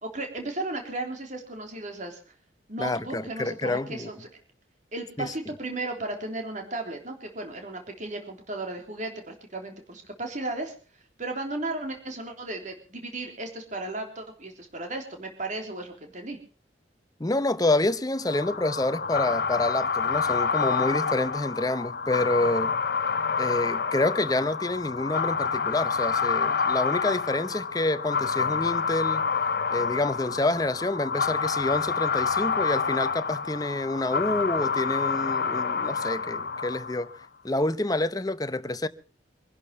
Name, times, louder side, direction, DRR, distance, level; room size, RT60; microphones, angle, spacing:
voice 1, 0.0-2.2 2.7-4.3 4.9-10.7 11.2-16.4, right 2 dB, 40° right, 3.5 m, -35 dB
voice 2, 2.8-4.1 5.2-5.3 17.2-22.7 23.4-29.3 29.7-37.1 37.4-38.9, left 2 dB, 20° left, 0.8 m, -28 dB
sound 1, 18.3-37.2, left 5 dB, 55° left, 0.8 m, -28 dB
24.5 x 11.5 x 4.8 m
head